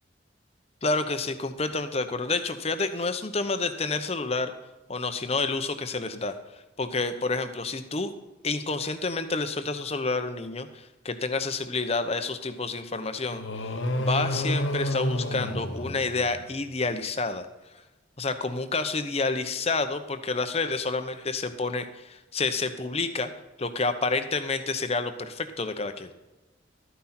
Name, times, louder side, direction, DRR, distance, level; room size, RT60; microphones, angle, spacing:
voice 1, 0.8-4.5 4.9-6.3 6.8-8.1 8.4-13.4 13.9-17.5 18.2-23.3 23.6-26.1, left 3 dB, 30° left, 9 dB, 0.9 m, -29 dB
sound 1, 13.3-16.6, equal, 85° left, 1.2 m, -30 dB
13.0 x 9.7 x 4.3 m, 1.1 s
head